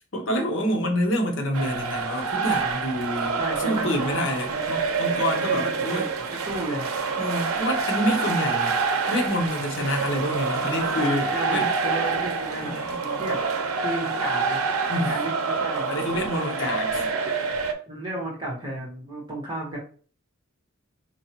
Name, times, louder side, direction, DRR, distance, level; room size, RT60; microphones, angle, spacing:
voice 1, 0.1-6.0 7.2-8.8 9.1-11.7 12.6-13.0 14.9-15.1 15.9-17.1, equal, 60° left, 0.8 m, -27 dB
sound 1, 1.5-17.7, right 4 dB, 90° right, 0.6 m, -27 dB
voice 2, 3.4-4.7 5.4-7.0 10.7-13.4 13.8-14.7 15.0-15.9 17.9-19.8, right 2 dB, 20° right, 1.3 m, -33 dB
4.5 x 2.8 x 2.8 m
head